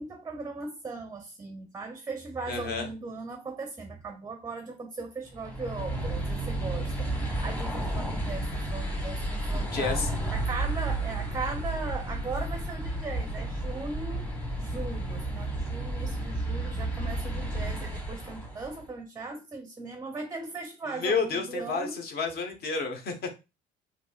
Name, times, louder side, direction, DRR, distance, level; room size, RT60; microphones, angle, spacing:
voice 1, 0.0-10.0 10.3-14.3 14.6-22.0, right 3 dB, 15° right, 0.5 m, -38 dB
voice 2, 2.5-2.9 9.7-10.1 20.9-23.3, left 4 dB, 50° left, 0.9 m, -30 dB
sound 1, 5.3-18.8, right 1 dB, 5° left, 0.9 m, -32 dB
2.9 x 2.6 x 2.3 m
supercardioid pair, 80°, 20 cm